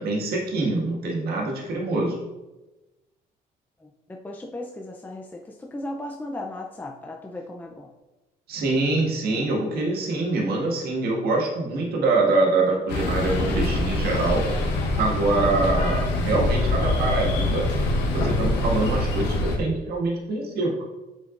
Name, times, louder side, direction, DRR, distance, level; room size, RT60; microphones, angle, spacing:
voice 1, 0.0-2.2 8.5-14.5 15.0-17.7 18.1-20.8, right 3 dB, 65° right, -2 dB, 1.8 m, -24 dB
voice 2, 3.8-7.9, left 1 dB, 10° left, 1 dB, 0.5 m, -36 dB
sound 1, 12.9-19.6, left 2 dB, 85° left, 1.1 m, -24 dB
7.5 x 5.1 x 2.5 m, 1.1 s
cardioid pair, 110°, 17 cm